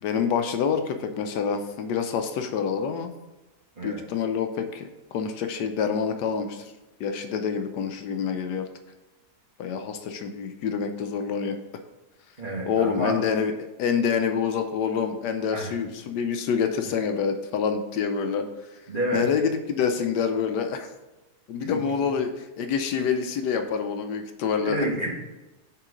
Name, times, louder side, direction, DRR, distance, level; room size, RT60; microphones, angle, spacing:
voice 1, 0.0-3.1 3.8-6.7 7.0-8.7 9.6-11.6 12.7-13.5 13.8-18.5 19.1-20.9 21.5-24.8, left 6 dB, 75° left, 7 dB, 1.2 m, -27 dB
voice 2, 12.4-13.1 15.5-15.8 18.9-19.2 21.6-21.8 24.6-25.1, right 1 dB, 30° right, -3 dB, 1.4 m, -29 dB
7.5 x 3.8 x 5.0 m, 1.0 s
omnidirectional pair, 1.9 m